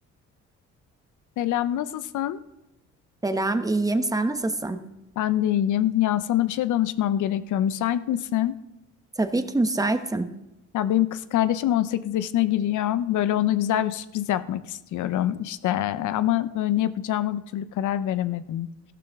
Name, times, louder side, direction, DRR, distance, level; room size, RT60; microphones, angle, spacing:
voice 1, 1.4-2.4 5.2-8.6 10.7-18.7, left 12 dB, 75° left, 14 dB, 0.7 m, -25 dB
voice 2, 3.2-4.8 9.2-10.3, right 2 dB, 10° right, 8 dB, 1.1 m, -25 dB
14.0 x 12.5 x 3.6 m, 0.96 s
cardioid pair, 90°, 30 cm